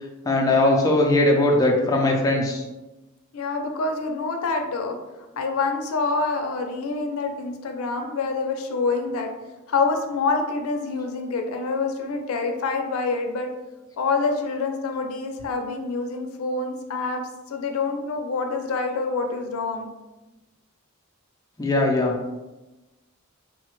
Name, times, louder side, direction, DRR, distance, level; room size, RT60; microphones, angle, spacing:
voice 1, 0.3-2.6 21.6-22.1, left 2 dB, 15° left, -1 dB, 0.3 m, -20 dB
voice 2, 3.3-5.0 5.4-9.3 9.7-13.5 14.0-17.2 17.5-19.9, left 3 dB, 85° left, 4 dB, 0.4 m, -26 dB
3.1 x 2.1 x 3.0 m, 1.1 s
head